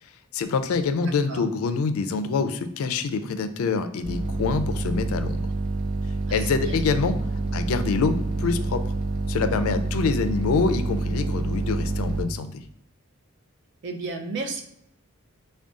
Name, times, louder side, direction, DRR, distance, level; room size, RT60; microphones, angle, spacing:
voice 1, 0.3-5.4 6.3-7.2 7.5-8.8 9.3-12.5, left 4 dB, 75° left, 10 dB, 0.4 m, -25 dB
voice 2, 1.1-1.4 6.3-6.8 13.8-14.6, right 3 dB, 55° right, 3 dB, 0.6 m, -33 dB
sound 1, 4.0-12.2, right 2 dB, 90° right, 0.8 m, -27 dB
3.6 x 2.2 x 3.7 m, 0.74 s
head